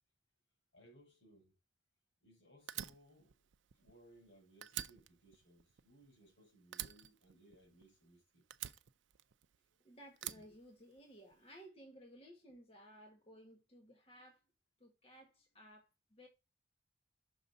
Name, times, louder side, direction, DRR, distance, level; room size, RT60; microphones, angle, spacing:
voice 1, 0.7-1.5 2.2-3.3 3.7-8.4, right 1 dB, 80° left, 4.2 m, -64 dB
Fire, 2.7-4.3 4.6-6.3 6.7-8.1 8.5-9.7 10.2-11.3, right 12 dB, 80° right, 0.5 m, -47 dB
voice 2, 9.8-14.4 14.8-16.3, equal, 30° left, 1.5 m, -58 dB
6.2 x 3.9 x 5.4 m
head